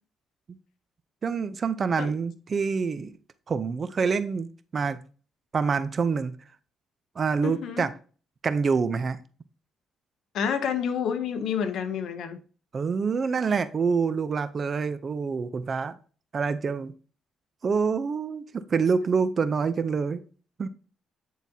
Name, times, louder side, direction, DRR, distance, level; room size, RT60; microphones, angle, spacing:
voice 1, 1.2-3.1 3.5-5.0 5.5-6.4 7.2-7.9 8.4-9.2 12.7-16.0 16.3-16.9 17.6-20.2 20.6-20.7, right 5 dB, 45° right, 0.6 m, -26 dB
voice 2, 7.4-7.9 10.3-12.4, left 7 dB, 75° left, 0.8 m, -29 dB
9.2 x 4.0 x 2.8 m
cardioid pair, 90°, 0 cm